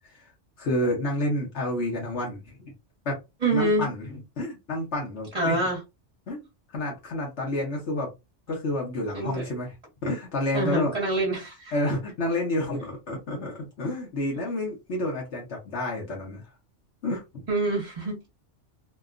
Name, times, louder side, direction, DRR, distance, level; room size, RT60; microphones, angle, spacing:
voice 1, 0.6-2.7 3.0-3.2 3.5-5.7 6.3-6.4 6.7-8.1 8.5-9.7 10.0-10.9 11.7-16.4 17.0-17.2, left 1 dB, 70° left, 1.1 m, -29 dB
voice 2, 3.4-3.9 5.3-5.8 9.1-9.5 10.5-11.7 17.5-18.3, right 2 dB, 35° right, 1.1 m, -26 dB
2.9 x 2.2 x 2.4 m
omnidirectional pair, 1.2 m